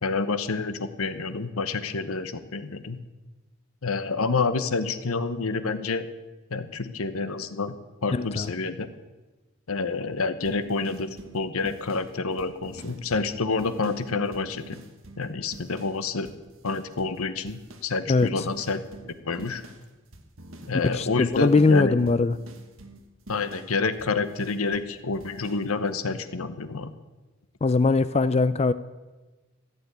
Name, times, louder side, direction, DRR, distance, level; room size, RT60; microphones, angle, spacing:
voice 1, 0.0-3.0 3.8-6.1 6.5-7.7 8.0-8.9 9.7-14.8 15.2-16.3 16.6-18.8 19.0-19.6 20.7-21.9 23.3-26.9, left 4 dB, 80° left, 11 dB, 1.0 m, -28 dB
voice 2, 8.1-8.5 18.1-18.5 20.9-22.4 27.6-28.7, left 3 dB, 30° left, 15 dB, 0.3 m, -21 dB
sound 1, 10.4-16.0 16.2-17.2 17.5-24.9 25.2-25.7, right 1 dB, 70° right, 1.4 m, -46 dB
14.5 x 7.0 x 9.5 m, 1.2 s
head